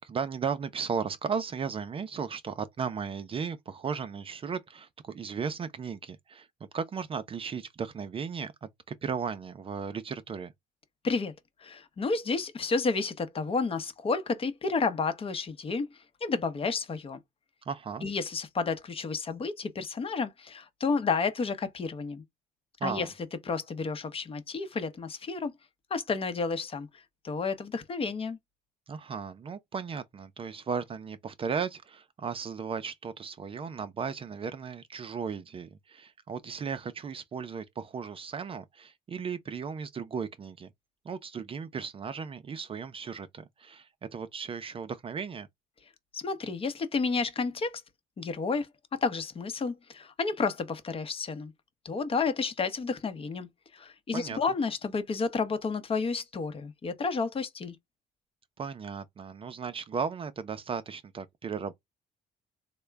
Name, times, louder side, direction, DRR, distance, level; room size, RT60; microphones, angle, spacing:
voice 1, 0.0-6.5 6.7-10.5 17.7-18.1 22.8-23.1 28.9-40.7 41.0-45.5 54.1-54.4 58.6-61.7, right 6 dB, 35° right, 0.5 m, -36 dB
voice 2, 11.6-17.2 18.0-22.2 22.8-23.1 23.4-25.5 25.9-28.4 46.1-47.8 48.2-51.5 51.8-57.8, left 4 dB, 35° left, 0.8 m, -31 dB
3.6 x 2.2 x 3.3 m
cardioid pair, 110°, 17 cm